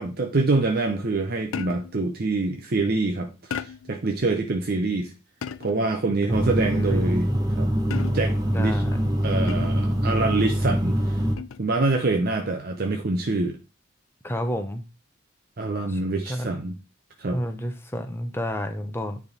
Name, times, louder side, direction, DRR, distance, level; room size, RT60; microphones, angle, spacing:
voice 1, 0.0-5.1 5.6-7.3 7.6-7.7 8.1-8.8 9.2-11.2 11.6-13.6 15.6-16.8 17.2-17.4, right 3 dB, 50° right, 0.7 m, -25 dB
sound 1, 1.5-2.0 3.5-4.0 5.4-5.9 7.9-8.5 9.5-9.9 11.4-11.7, left 7 dB, 80° left, 0.4 m, -35 dB
sound 2, 6.3-11.4, equal, 20° right, 1.0 m, -24 dB
voice 2, 6.7-7.1 8.5-9.0 14.2-14.8 15.9-16.5 17.3-19.2, equal, 10° left, 0.7 m, -30 dB
9.6 x 3.5 x 4.1 m
head